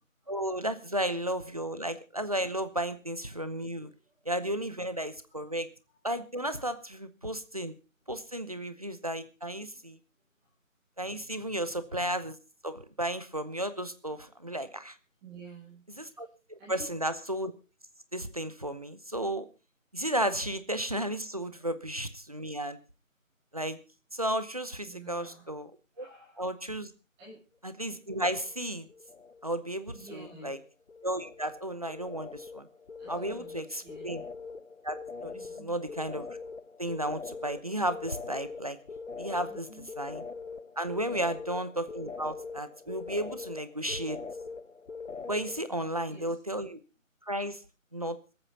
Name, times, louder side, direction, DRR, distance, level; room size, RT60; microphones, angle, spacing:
voice 1, 0.3-3.9 4.3-5.7 6.0-7.7 8.1-10.0 11.0-12.4 12.6-15.0 16.0-17.5 18.1-19.5 19.9-22.8 23.5-23.8 24.1-25.7 26.0-26.1 26.4-26.9 27.6-28.9 29.4-29.9 30.4-30.6 31.0-32.7 33.1-34.2 34.8-35.3 35.6-36.3 36.8-38.8 39.2-39.7 40.0-40.2 40.8-44.2 45.3-46.8 47.3-47.6 47.9-48.2, right 1 dB, 25° right, 12 dB, 0.9 m, -33 dB
voice 2, 11.0-11.9 15.2-16.3 16.6-17.1 21.5-21.7 24.8-25.5 25.9-26.4 27.2-27.4 29.9-30.6 33.0-34.3 35.3-35.8 39.4-39.9 41.0-41.3 45.7-46.4, right 3 dB, 5° right, -9 dB, 1.6 m, -52 dB
sound 1, 28.0-28.6 28.9-29.6 29.9-45.7, left 4 dB, 60° left, 1.0 m, -43 dB
26.5 x 8.9 x 4.0 m, 0.32 s
figure-of-eight pair, 170°, 41 cm